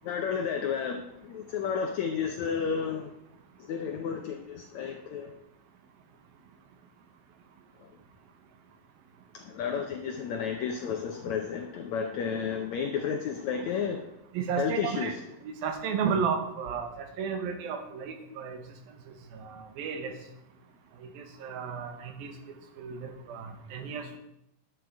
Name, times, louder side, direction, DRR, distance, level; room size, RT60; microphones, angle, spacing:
voice 1, 0.0-3.1 3.6-5.4 7.8-7.9 9.3-14.1 14.6-15.1, left 6 dB, 80° left, 4 dB, 1.6 m, -32 dB
voice 2, 14.3-15.1 15.4-18.6 19.3-20.1 21.2-22.3 22.8-24.2, right 6 dB, 80° right, 6 dB, 2.9 m, -33 dB
11.0 x 7.8 x 4.6 m, 0.81 s
omnidirectional pair, 4.2 m